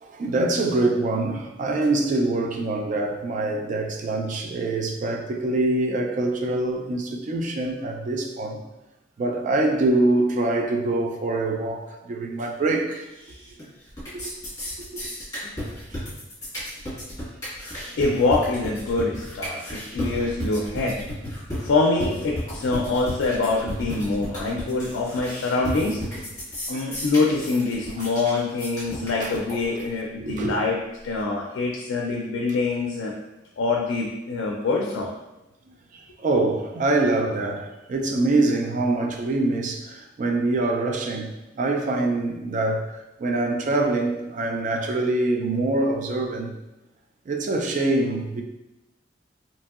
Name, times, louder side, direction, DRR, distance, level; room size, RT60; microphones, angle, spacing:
voice 1, 0.0-8.6 9.2-13.1 14.1-14.3 14.8-14.9 26.7-26.8 28.0-28.1 29.2-29.3 30.2-30.5 35.9-42.9 43.2-46.5 47.3-48.4, right 2 dB, 40° right, 0.3 m, -24 dB
sound 1, 13.2-13.6 13.9-29.9, left 1 dB, 20° left, 1.3 m, -33 dB
voice 2, 18.0-21.0 21.6-26.0 26.7-30.8 31.0-33.1 33.6-35.1 36.1-36.2, left 3 dB, 85° left, 0.3 m, -25 dB
2.9 x 2.6 x 2.3 m
head